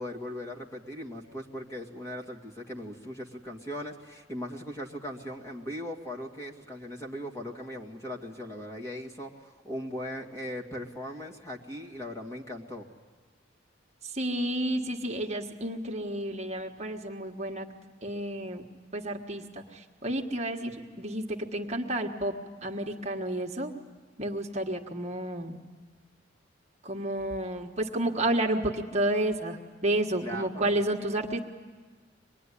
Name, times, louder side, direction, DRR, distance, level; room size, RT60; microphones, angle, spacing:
voice 1, 0.0-12.9 30.2-30.7, equal, 15° left, -1 dB, 2.1 m, -39 dB
voice 2, 14.0-17.7 18.0-18.7 18.9-22.3 22.6-23.7 24.2-25.6 26.8-31.4, right 1 dB, 35° right, 1 dB, 1.5 m, -31 dB
25.5 x 20.5 x 10.0 m, 1.4 s
head